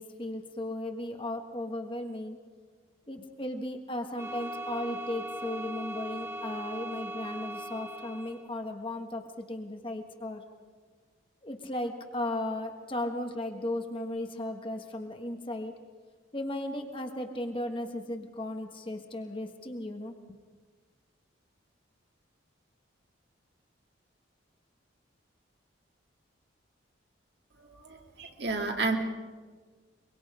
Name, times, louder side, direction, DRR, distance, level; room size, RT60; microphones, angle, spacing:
voice 1, 0.0-2.4 3.1-10.4 11.4-15.7 16.3-20.1, left 1 dB, 25° left, 4 dB, 1.5 m, -36 dB
sound 1, 4.2-8.5, right 1 dB, 10° right, 1.2 m, -39 dB
voice 2, 27.7-29.0, right 3 dB, 55° right, 2 dB, 2.2 m, -31 dB
23.5 x 23.0 x 5.0 m, 1.5 s
head